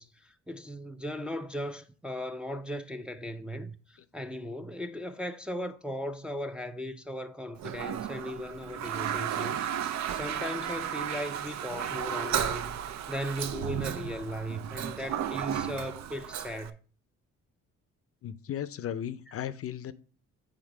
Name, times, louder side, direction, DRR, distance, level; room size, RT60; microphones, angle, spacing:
voice 1, 0.0-16.8, equal, 5° right, 0.4 m, -37 dB
Toilet flush, 7.6-16.7, right 9 dB, 65° right, 0.5 m, -34 dB
voice 2, 18.2-19.9, left 10 dB, 50° left, 0.5 m, -36 dB
7.3 x 3.5 x 4.8 m
cardioid pair, 90°, 30 cm